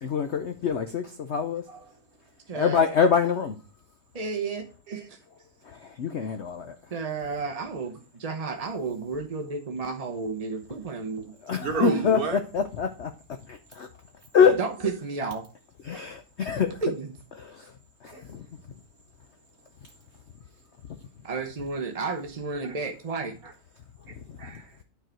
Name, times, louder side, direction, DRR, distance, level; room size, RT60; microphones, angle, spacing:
voice 1, 0.0-1.6 2.5-3.5 6.0-6.7 11.5-12.2 12.5-13.1 13.5-13.9 14.3-14.5 15.9-16.7 17.4-17.7 18.0-18.4, left 6 dB, 65° left, 0.7 m, -25 dB
voice 2, 1.7-2.0 4.9-5.1 11.6-12.4 14.4-14.9 16.6-16.7 18.1-18.6 22.6-22.8 23.4-23.5 24.1-24.8, right 4 dB, 55° right, 1.8 m, -35 dB
voice 3, 2.5-2.8 4.1-4.7 4.9-5.2 6.9-11.3 11.8-12.2 14.6-15.4 16.8-17.2 21.2-23.3, right 4 dB, 40° right, 0.5 m, -31 dB
9.2 x 4.8 x 4.5 m
omnidirectional pair, 1.9 m